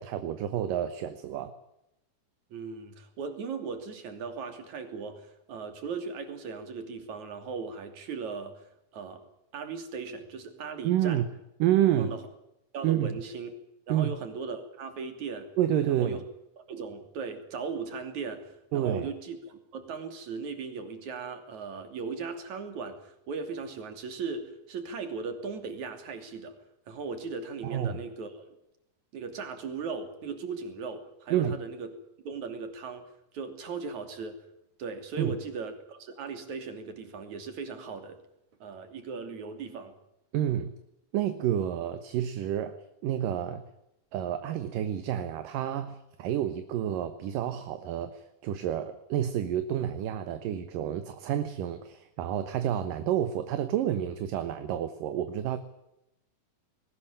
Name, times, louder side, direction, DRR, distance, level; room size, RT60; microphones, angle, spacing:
voice 1, 0.0-1.5 10.8-11.2 11.6-12.2 12.8-13.1 13.9-14.1 15.6-16.2 18.7-19.1 27.6-28.0 31.3-31.6 35.2-35.3 40.3-40.7 41.1-42.8 43.0-43.6 44.1-55.6, right 11 dB, 70° right, 10 dB, 2.7 m, -29 dB
voice 2, 2.5-8.6 8.9-9.2 9.5-11.3 12.0-12.2 12.7-13.5 13.9-15.5 16.0-16.2 16.7-26.6 26.9-28.5 29.1-31.9 32.2-33.0 33.3-34.5 34.8-38.2 38.6-39.9, right 5 dB, 50° right, 7 dB, 4.1 m, -38 dB
21.0 x 19.0 x 8.9 m, 0.84 s
omnidirectional pair, 4.3 m